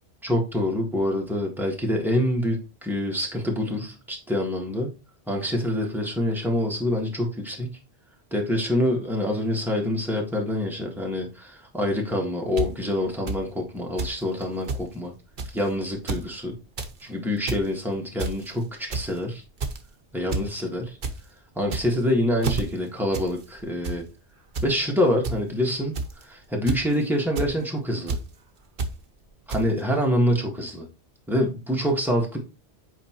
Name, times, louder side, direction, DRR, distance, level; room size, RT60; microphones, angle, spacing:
voice 1, 0.2-4.9 5.3-7.8 8.3-15.1 15.5-16.6 17.0-19.4 20.1-21.0 21.6-24.0 24.6-26.0 26.3-28.2 29.5-30.9 31.3-32.4, left 1 dB, ahead, 0 dB, 1.7 m, -26 dB
sound 1, 12.6-12.7 13.3-13.4 14.0-14.2 14.4-14.5 14.7-14.8 15.4-15.6 15.9-16.2 16.6-16.9 17.3-17.6 18.2-18.5 18.9-19.2 19.6-19.9 20.3-20.5 20.8-21.1 21.6-22.0 22.4-22.6 23.1-23.3 23.6-24.0 24.5-24.7 25.2-25.3 25.9-26.2 26.7-26.9 27.4-27.5 28.1-28.2 28.8-28.9 29.5-29.6, right 3 dB, 50° right, 1.0 m, -28 dB
8.1 x 4.8 x 3.1 m, 0.30 s
omnidirectional pair, 1.1 m